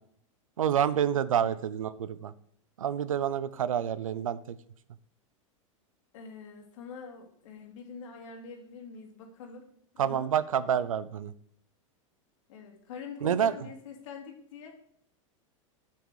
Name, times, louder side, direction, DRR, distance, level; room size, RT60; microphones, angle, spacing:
voice 1, 0.6-2.3 2.8-4.4 10.0-11.3 13.2-13.5, right 9 dB, 85° right, 16 dB, 0.6 m, -28 dB
voice 2, 6.1-9.6 10.0-10.3 12.5-14.8, left 5 dB, 70° left, 2 dB, 2.7 m, -45 dB
8.5 x 7.9 x 4.8 m, 0.65 s
hypercardioid pair, 105°, 17 cm